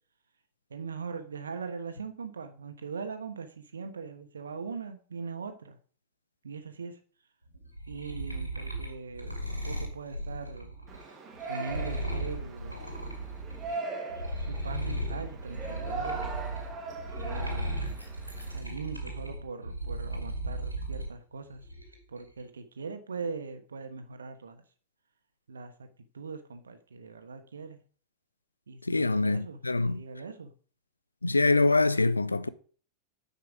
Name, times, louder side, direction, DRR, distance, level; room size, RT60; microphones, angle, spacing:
voice 1, 0.7-5.8 6.4-7.0 7.9-10.7 11.5-12.9 14.4-16.3 17.2-18.1 18.5-21.6 22.1-24.6 25.5-25.9 26.1-27.8 28.7-30.5, right 5 dB, 70° right, 1.2 m, -41 dB
sound 1, 7.5-13.8 14.1-21.1 21.5-22.2, right 1 dB, 90° right, 2.0 m, -36 dB
Yell, 10.9-18.6, right 3 dB, 25° right, 2.1 m, -40 dB
voice 2, 28.8-30.0 31.2-32.5, left 3 dB, 80° left, 0.5 m, -24 dB
9.6 x 5.6 x 4.9 m
figure-of-eight pair, 90°, 0 cm